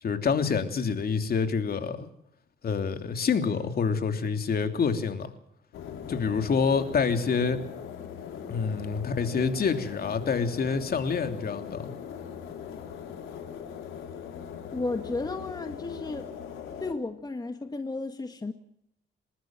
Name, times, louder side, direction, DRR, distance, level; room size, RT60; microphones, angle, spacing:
voice 1, 0.0-2.1 2.6-5.3 6.1-7.7 8.5-11.9, left 5 dB, 50° left, 7 dB, 3.0 m, -27 dB
sound 1, 5.7-16.9, left 8 dB, 85° left, 4.2 m, -40 dB
voice 2, 14.7-16.3 16.8-18.5, left 3 dB, 20° left, 7 dB, 1.8 m, -33 dB
28.0 x 13.0 x 7.7 m, 0.77 s
cardioid pair, 90°, 20 cm